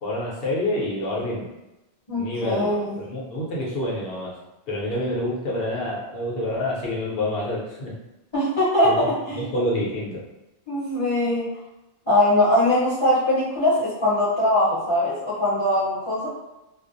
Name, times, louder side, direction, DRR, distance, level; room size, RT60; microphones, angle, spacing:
voice 1, 0.0-1.5 2.1-4.4 4.7-7.9 8.8-8.9 9.3-10.2, left 1 dB, 60° left, -5 dB, 0.9 m, -27 dB
voice 2, 2.1-3.0 8.3-9.4 10.7-11.5 12.1-16.3, left 1 dB, 30° left, -11 dB, 0.8 m, -21 dB
2.4 x 2.0 x 2.5 m, 0.99 s
omnidirectional pair, 1.1 m